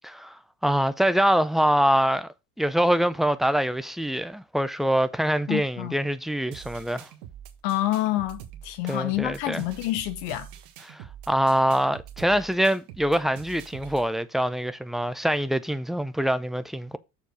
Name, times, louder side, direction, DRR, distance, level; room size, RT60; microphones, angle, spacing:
voice 1, 0.0-7.1 8.9-9.6 10.9-17.0, equal, ahead, 0.5 m, -24 dB
voice 2, 5.5-6.0 7.6-10.5, left 15 dB, 60° left, 1.4 m, -28 dB
sound 1, 6.5-14.1, right 10 dB, 65° right, 1.4 m, -45 dB
6.8 x 4.6 x 6.3 m
hypercardioid pair, 70°, 48 cm